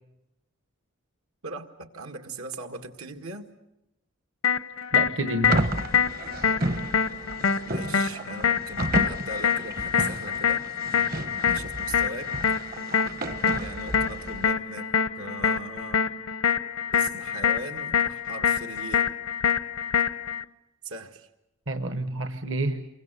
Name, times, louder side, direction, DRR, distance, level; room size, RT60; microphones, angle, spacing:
voice 1, 1.4-3.4 7.6-10.7 11.5-12.4 13.6-16.1 16.9-19.1 20.8-21.3, right 2 dB, 85° right, 5 dB, 2.0 m, -39 dB
sound 1, 4.4-20.4, left 7 dB, 85° left, 0.8 m, -26 dB
voice 2, 4.9-5.8 21.7-22.9, right 1 dB, 60° right, 8 dB, 1.1 m, -29 dB
sound 2, 5.4-14.5, right 1 dB, 45° right, 0.9 m, -32 dB
28.0 x 23.5 x 6.8 m, 0.91 s
head